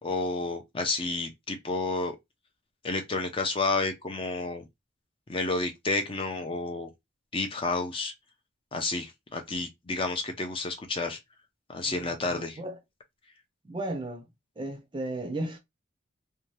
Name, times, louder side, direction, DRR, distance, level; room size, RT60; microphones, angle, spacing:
voice 1, 0.0-2.2 2.8-4.6 5.3-6.9 7.3-8.1 8.7-11.2 11.7-12.6, left 3 dB, 25° left, 0.5 m, -30 dB
voice 2, 11.8-12.8 13.6-14.2 14.6-15.6, right 1 dB, 25° right, 0.5 m, -35 dB
2.7 x 2.2 x 3.0 m
head